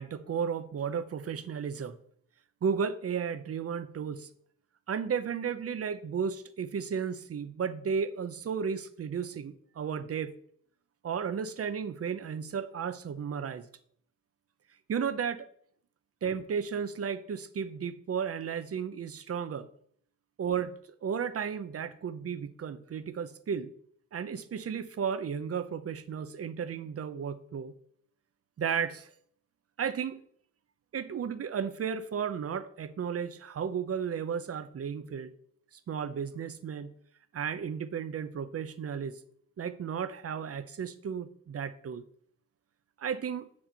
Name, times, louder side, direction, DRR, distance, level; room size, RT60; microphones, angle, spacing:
voice 1, 0.0-2.0 2.6-4.3 4.9-10.3 11.0-13.7 14.9-15.5 16.2-19.7 20.4-23.7 24.1-27.7 28.6-29.1 29.8-30.2 30.9-35.3 35.9-37.0 37.3-39.2 39.6-42.0 43.0-43.5, right 7 dB, 45° right, 0.6 m, -34 dB
8.2 x 6.4 x 4.4 m
wide cardioid pair, 145°, 33 cm